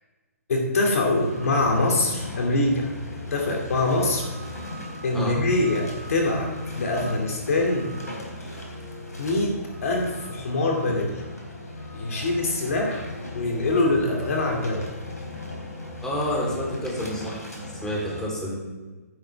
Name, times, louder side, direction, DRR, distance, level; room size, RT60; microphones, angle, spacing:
voice 1, 0.5-4.3 5.0-7.9 9.2-9.6 9.8-11.2 11.9-14.9, left 2 dB, 65° left, 0 dB, 2.5 m, -24 dB
sound 1, 1.1-18.2, left 2 dB, 90° left, 3.7 m, -37 dB
voice 2, 16.0-17.4 17.8-18.6, equal, 5° left, -4 dB, 3.5 m, -29 dB
14.5 x 11.0 x 3.4 m, 1.3 s
figure-of-eight pair, 130°, 9 cm